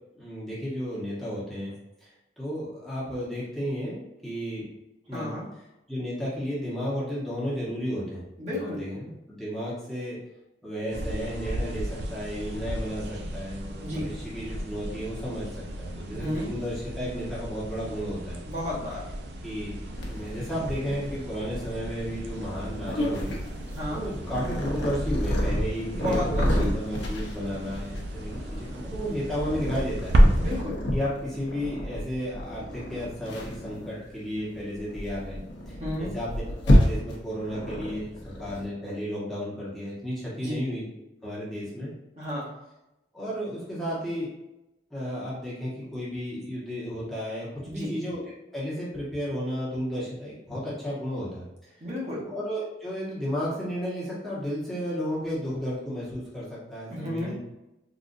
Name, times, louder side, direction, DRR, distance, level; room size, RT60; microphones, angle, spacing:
voice 1, 0.1-1.7 2.0-4.7 5.1-5.3 5.9-8.2 8.5-10.2 10.6-15.5 15.8-18.4 19.4-19.8 20.0-23.3 23.9-30.1 30.9-35.4 35.7-40.8 41.2-41.9 43.1-44.3 44.9-48.2 48.5-51.7 52.2-57.4, equal, ahead, -9 dB, 0.9 m, -33 dB
voice 2, 5.1-5.4 8.4-8.8 13.8-14.1 16.1-16.5 18.5-19.0 23.7-24.0 25.9-26.7 30.3-30.8 35.8-36.1 40.4-40.6 42.2-42.5 47.6-47.9 51.8-52.3 56.9-57.3, left 1 dB, 40° right, -6 dB, 0.9 m, -32 dB
sound 1, 10.9-30.6, equal, 65° right, 0.4 m, -32 dB
Purr, 20.0-38.7, equal, 80° left, 0.7 m, -30 dB
3.8 x 2.4 x 2.5 m, 0.94 s
head